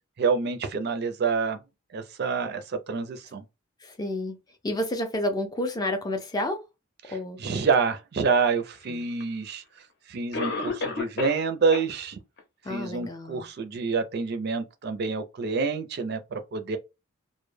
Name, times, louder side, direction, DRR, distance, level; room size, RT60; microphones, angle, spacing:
voice 1, 0.2-1.6 1.9-3.4 7.0-9.6 10.1-12.2 12.7-16.8, right 5 dB, 50° right, 0.4 m, -27 dB
voice 2, 3.8-4.4 4.6-6.6 7.1-7.4 8.9-9.0 12.7-13.5, left 1 dB, 20° left, 0.4 m, -30 dB
Cough, 9.2-9.3 10.3-11.5 11.7-11.8 12.4-12.5 13.0-13.1, left 3 dB, 55° left, 0.7 m, -30 dB
2.1 x 2.1 x 3.2 m
head